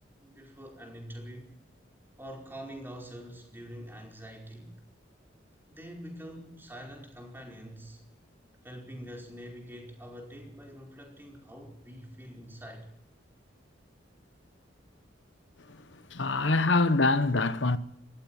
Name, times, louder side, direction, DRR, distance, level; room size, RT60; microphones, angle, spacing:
voice 1, 0.2-1.5 2.2-4.7 5.7-8.0 8.6-12.9, equal, 10° right, 5.0 m, -45 dB
voice 2, 16.1-17.8, left 3 dB, 70° left, 1.1 m, -24 dB
19.5 x 15.5 x 9.0 m
head